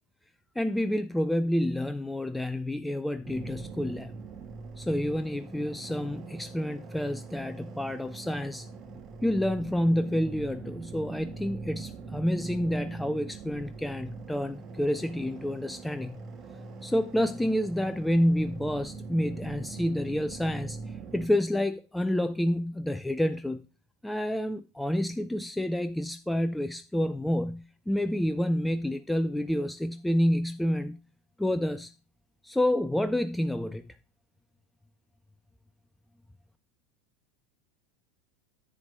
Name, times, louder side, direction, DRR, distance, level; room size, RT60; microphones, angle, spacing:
voice 1, 0.6-4.1 4.8-8.7 9.2-16.2 16.8-20.8 21.1-23.6 24.0-31.0 31.4-31.9 32.4-33.9, left 1 dB, 5° left, 0.5 m, -29 dB
sound 1, 3.2-21.3, right 4 dB, 30° right, 1.7 m, -42 dB
10.5 x 7.9 x 3.7 m
figure-of-eight pair, 80°, 0 cm